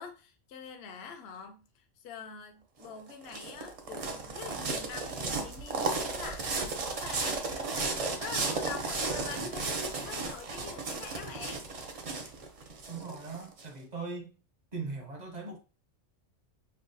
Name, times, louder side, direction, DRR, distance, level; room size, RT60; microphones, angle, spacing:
voice 1, 0.0-12.0, left 6 dB, 65° left, 0.8 m, -45 dB
sound 1, 2.8-13.6, right 3 dB, 60° right, 0.4 m, -34 dB
voice 2, 12.9-14.3 14.7-15.6, right 4 dB, 40° right, 0.7 m, -39 dB
5.4 x 2.2 x 2.6 m
omnidirectional pair, 1.3 m